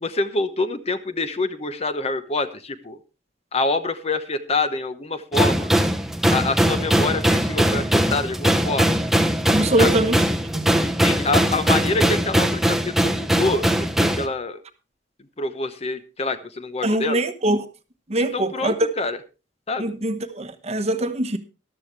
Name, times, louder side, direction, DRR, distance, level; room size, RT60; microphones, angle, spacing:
voice 1, 0.0-3.0 3.5-5.7 6.3-9.0 9.8-9.9 11.0-13.7 14.0-14.6 15.4-17.2 18.2-19.2 19.7-19.9, left 3 dB, 35° left, 1.0 m, -26 dB
sound 1, 5.3-14.3, equal, ahead, 0.9 m, -20 dB
voice 2, 9.5-10.2 10.5-10.7 16.8-17.6 18.1-18.8 19.8-21.4, right 1 dB, 35° right, 1.1 m, -23 dB
14.0 x 12.5 x 3.3 m
head